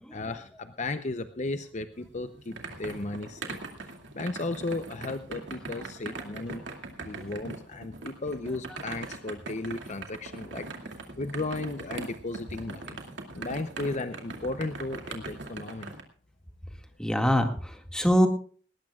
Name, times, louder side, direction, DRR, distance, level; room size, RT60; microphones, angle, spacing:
voice 1, 0.1-3.6 4.1-6.6 7.0-10.7 11.2-13.0 13.3-15.9, left 2 dB, 40° left, 9 dB, 0.8 m, -35 dB
sound 1, 2.0-16.0, right 3 dB, 80° right, 2.5 m, -41 dB
voice 2, 17.0-18.3, equal, 5° left, 4 dB, 2.0 m, -24 dB
19.0 x 19.0 x 2.4 m, 0.43 s
head